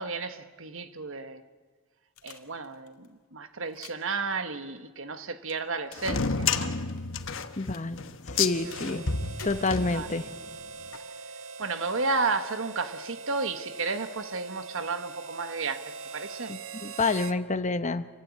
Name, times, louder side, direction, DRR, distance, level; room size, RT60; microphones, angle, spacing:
voice 1, 0.0-1.4 2.2-6.8 8.6-8.8 9.9-10.1 10.9-11.3 11.6-16.5, right 4 dB, 65° right, 1.4 m, -33 dB
sound 1, 2.2-3.1 3.6-4.1 5.5-6.1 6.4-7.5 7.7-7.8 8.7-9.1 9.4-10.2 10.9-11.0, left 5 dB, 85° left, 2.2 m, -47 dB
sound 2, 6.0-10.5, left 5 dB, 65° left, 1.3 m, -30 dB
voice 2, 7.6-9.1 9.4-10.2 16.5-18.1, left 3 dB, 35° left, 1.0 m, -28 dB
Harmonica, 8.3-17.4, right 4 dB, 80° right, 0.9 m, -42 dB
28.0 x 16.0 x 9.5 m
head